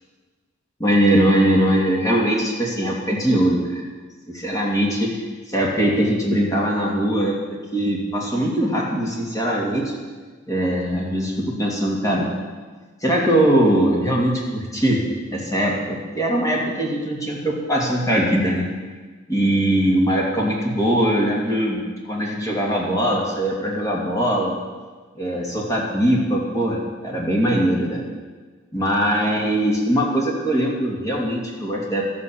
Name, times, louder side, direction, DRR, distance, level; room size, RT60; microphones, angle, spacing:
voice 1, 0.8-3.8 4.3-5.1 5.5-7.4 7.7-9.9 10.5-12.3 13.0-15.0 15.3-18.6 19.3-21.8 22.0-24.6 25.1-28.0 28.7-32.1, right 1 dB, 15° left, -3 dB, 2.6 m, -21 dB
13.0 x 8.9 x 7.2 m, 1.4 s
head